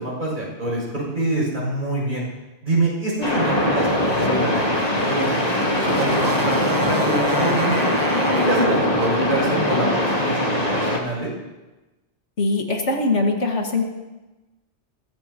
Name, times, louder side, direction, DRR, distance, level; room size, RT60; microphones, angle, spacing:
voice 1, 0.0-2.2 2.6-7.9 8.3-11.3, right 2 dB, 45° right, -4 dB, 7.3 m, -26 dB
sound 1, 3.2-11.0, left 1 dB, 35° left, 2.5 m, -21 dB
Motorcycle, 3.7-10.1, right 2 dB, 20° right, 0.8 m, -31 dB
voice 2, 12.4-13.9, left 2 dB, 80° left, 2 dB, 2.1 m, -21 dB
22.5 x 16.5 x 3.0 m, 1.1 s
omnidirectional pair, 1.2 m